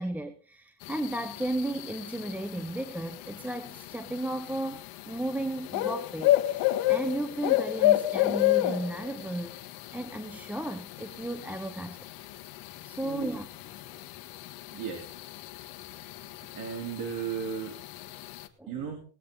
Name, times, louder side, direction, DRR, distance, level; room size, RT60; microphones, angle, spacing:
voice 1, 0.0-12.0 12.8-13.5 18.6-18.7, right 1 dB, 5° right, 9 dB, 0.8 m, -34 dB
sound 1, 0.8-18.5, left 15 dB, 60° left, 1.5 m, -32 dB
voice 2, 14.7-15.1 16.6-17.8 18.7-19.0, right 7 dB, 50° right, 2 dB, 3.3 m, -35 dB
19.0 x 9.9 x 3.9 m, 0.41 s
cardioid pair, 140°, 40 cm